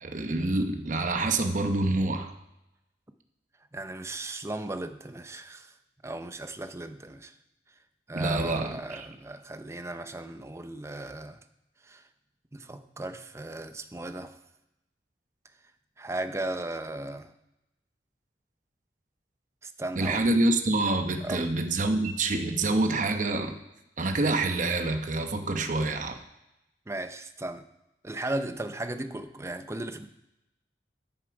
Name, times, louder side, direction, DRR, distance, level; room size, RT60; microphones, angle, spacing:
voice 1, 0.0-2.3 8.1-9.0 20.0-23.5 24.0-26.2, right 2 dB, 45° right, 6 dB, 0.9 m, -27 dB
voice 2, 3.7-5.7 6.0-7.3 8.1-11.4 11.8-12.0 12.5-14.4 16.0-17.3 19.6-20.3 21.2-21.5 26.9-27.6 28.0-30.1, right 2 dB, 15° right, 9 dB, 0.5 m, -36 dB
12.5 x 6.7 x 4.8 m, 0.90 s
head